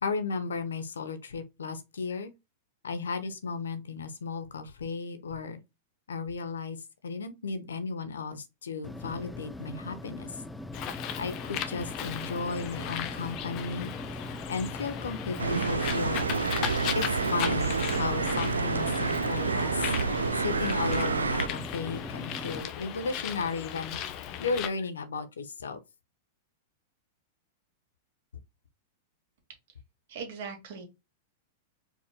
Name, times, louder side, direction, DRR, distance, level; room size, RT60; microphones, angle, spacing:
voice 1, 0.0-2.3 2.8-5.6 6.1-6.8 7.0-10.4 11.2-13.9 14.5-16.3 16.9-19.9 20.4-24.0 24.4-25.8, left 4 dB, 75° left, 0.9 m, -34 dB
sound 1, 8.8-22.6, left 1 dB, 5° left, 0.4 m, -41 dB
Bird, 10.7-24.7, left 10 dB, 40° left, 0.8 m, -37 dB
sound 2, 15.4-21.5, right 4 dB, 85° right, 0.4 m, -28 dB
voice 2, 30.1-30.8, right 5 dB, 60° right, 2.0 m, -39 dB
4.8 x 4.1 x 2.2 m
figure-of-eight pair, 100°, 0 cm